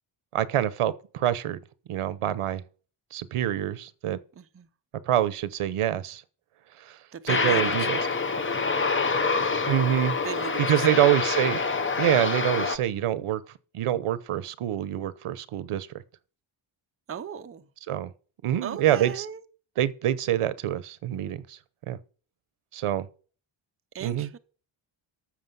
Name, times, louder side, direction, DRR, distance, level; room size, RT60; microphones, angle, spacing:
voice 1, 0.3-1.6 1.9-2.6 3.1-4.2 5.1-6.2 6.8-7.0 7.2-8.1 9.7-10.2 10.6-11.6 12.0-13.4 13.7-15.9 17.9-18.1 18.4-19.3 19.8-21.6 21.9-22.0 22.7-23.1 24.0-24.3, right 12 dB, 85° right, 1.0 m, -26 dB
voice 2, 4.4-4.7 7.1-8.0 10.2-11.0 17.1-17.7 18.6-19.4 23.9-24.4, right 8 dB, 30° right, 0.6 m, -37 dB
Aircraft, 7.3-12.8, left 4 dB, 25° left, 0.8 m, -26 dB
13.5 x 6.7 x 5.4 m
wide cardioid pair, 180°, 50 cm